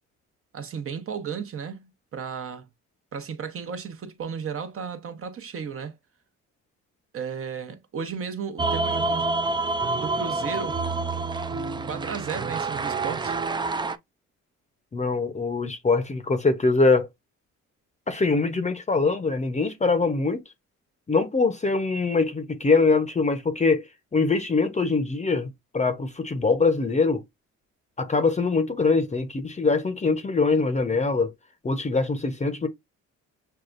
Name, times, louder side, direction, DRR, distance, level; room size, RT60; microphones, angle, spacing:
voice 1, 0.5-2.7 3.1-5.9 7.1-9.3 9.9-10.8 11.8-13.4, right 6 dB, 45° right, 0.9 m, -34 dB
sound 1, 8.6-14.0, right 3 dB, 15° right, 0.3 m, -27 dB
voice 2, 14.9-17.1 18.1-20.4 21.1-23.9 24.1-27.2 28.0-31.3 31.6-32.7, left 4 dB, 25° left, 0.7 m, -23 dB
6.5 x 2.3 x 2.5 m
cardioid pair, 90°, 30 cm